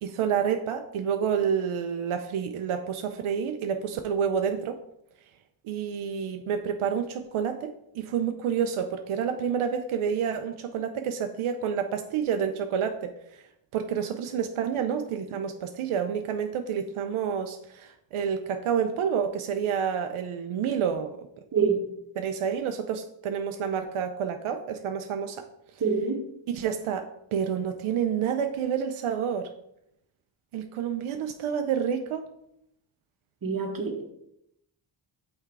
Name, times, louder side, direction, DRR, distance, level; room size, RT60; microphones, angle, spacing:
voice 1, 0.0-4.8 5.6-13.4 13.7-21.3 22.2-25.5 26.5-29.5 30.5-32.2, right 7 dB, 85° right, 6 dB, 0.6 m, -29 dB
voice 2, 21.5-21.8 25.8-26.2 33.4-34.1, right 5 dB, 45° right, 3 dB, 1.3 m, -26 dB
5.8 x 4.4 x 4.6 m, 0.77 s
cardioid pair, 90°, 49 cm